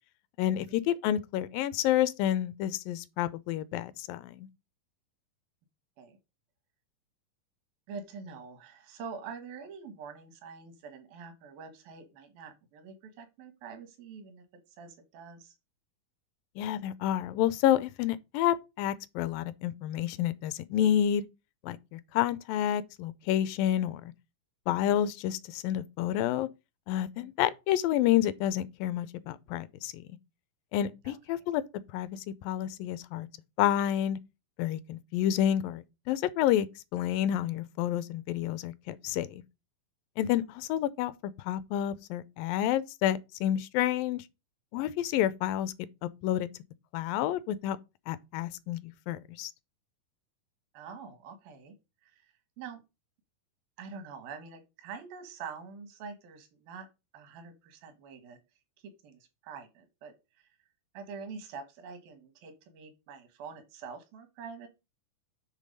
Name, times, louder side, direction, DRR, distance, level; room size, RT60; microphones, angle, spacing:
voice 1, 0.4-4.5 16.6-21.3 21.6-24.1 24.7-26.5 26.9-30.0 30.7-31.6 31.9-33.3 33.6-34.2 34.6-36.7 36.9-39.4 40.2-41.1 41.4-44.2 44.7-45.7 46.0-46.5 46.9-47.8 48.1-49.5, left 11 dB, 80° left, 2.2 m, -29 dB
voice 2, 7.9-15.6 27.2-27.3 31.0-31.4 50.7-51.8 52.0-52.8 53.8-56.9 57.1-58.4 58.8-60.1 60.9-64.7, right 5 dB, 80° right, 3.1 m, -45 dB
8.2 x 3.3 x 5.3 m
omnidirectional pair, 4.1 m